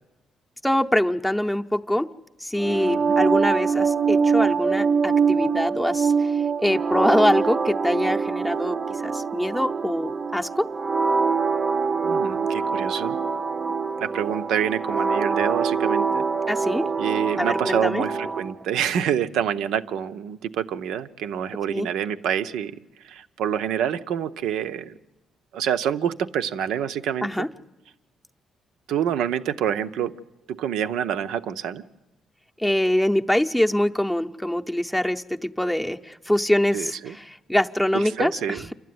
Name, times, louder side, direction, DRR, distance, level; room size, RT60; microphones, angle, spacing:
voice 1, 0.6-2.1 2.4-8.8 9.0-10.7 16.5-16.9 17.4-18.0 21.7-21.9 27.2-27.5 32.6-38.6, left 1 dB, 5° left, 4 dB, 0.7 m, -24 dB
sound 1, 2.6-18.5, right 5 dB, 35° right, 0.6 m, -24 dB
voice 2, 2.8-3.2 12.0-13.2 14.0-16.3 17.0-22.7 23.0-24.9 25.5-27.5 28.9-30.1 30.5-31.8 36.7-37.2 37.9-38.7, right 9 dB, 85° right, 11 dB, 0.7 m, -27 dB
27.5 x 12.5 x 9.5 m, 1.1 s
cardioid pair, 90°, 0 cm